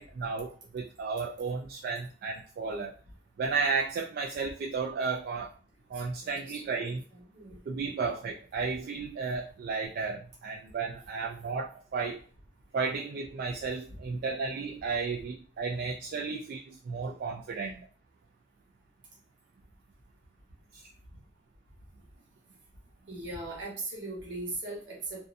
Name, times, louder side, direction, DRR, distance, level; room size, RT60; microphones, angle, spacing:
voice 1, 0.0-2.9 3.4-5.5 5.9-7.0 7.7-12.2 12.7-17.9 20.7-20.8, right 4 dB, 55° right, -1 dB, 0.3 m, -33 dB
voice 2, 5.9-6.8 7.1-8.0 8.2-8.3 23.1-25.3, right 2 dB, 75° right, -2 dB, 1.0 m, -40 dB
2.5 x 2.2 x 2.5 m, 0.41 s
head